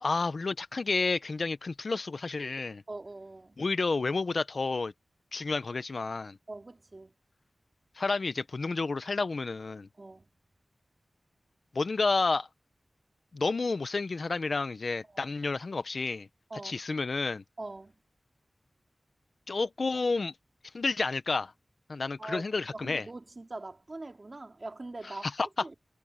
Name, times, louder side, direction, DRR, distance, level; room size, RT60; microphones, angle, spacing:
voice 1, 0.0-2.8 3.6-4.9 5.3-6.4 8.0-9.9 11.7-12.5 13.3-16.3 16.6-17.4 19.5-20.3 20.7-21.5 21.9-23.0 25.4-25.5, left 3 dB, 65° left, 0.9 m, -30 dB
voice 2, 2.9-3.6 6.5-7.1 10.0-10.3 15.1-15.3 16.5-16.8 17.6-18.0 22.2-22.5 22.7-25.3 25.6-25.7, right 2 dB, 45° right, 3.1 m, -42 dB
wide cardioid pair, 80°, 0 cm